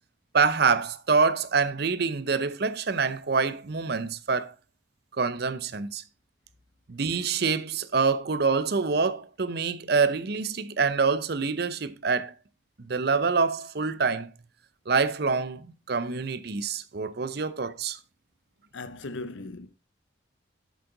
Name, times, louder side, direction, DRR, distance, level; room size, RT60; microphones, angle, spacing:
voice 1, 0.3-4.5 5.2-6.0 6.9-12.3 12.8-14.3 14.9-18.0, right 5 dB, 55° right, 0.6 m, -26 dB
voice 2, 18.7-19.7, left 2 dB, 70° left, 0.8 m, -37 dB
7.6 x 7.3 x 3.8 m
head